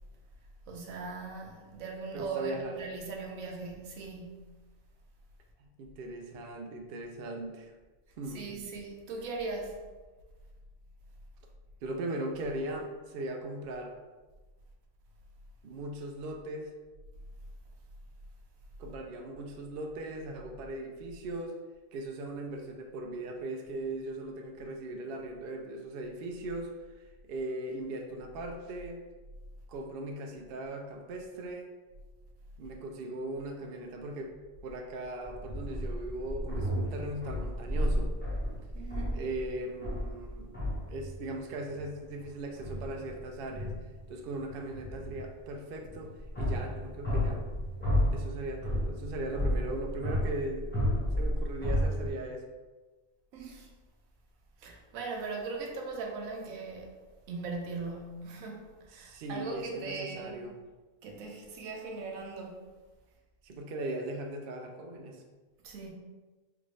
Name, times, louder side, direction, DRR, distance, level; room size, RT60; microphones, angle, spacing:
voice 1, 0.7-4.6 8.3-9.8 38.7-39.2 53.3-53.7 54.6-56.9 57.3-60.5 61.0-62.6 65.6-65.9, right 3 dB, 85° right, 1 dB, 1.1 m, -39 dB
voice 2, 2.1-2.8 5.6-7.7 8.2-8.5 11.8-14.0 15.6-16.7 18.8-21.6 21.9-26.7 27.3-29.0 29.7-31.7 32.6-34.3 34.6-38.2 39.1-40.6 40.9-43.7 44.1-46.1 46.4-47.4 48.1-50.7 51.1-52.5 58.9-60.6 63.4-65.2, right 1 dB, 65° right, 3 dB, 0.5 m, -38 dB
sound 1, 35.2-41.2 41.5-42.2 42.6-44.0 44.4-52.1, equal, 10° left, 0.8 m, -32 dB
3.6 x 2.5 x 3.1 m, 1.3 s
omnidirectional pair, 1.4 m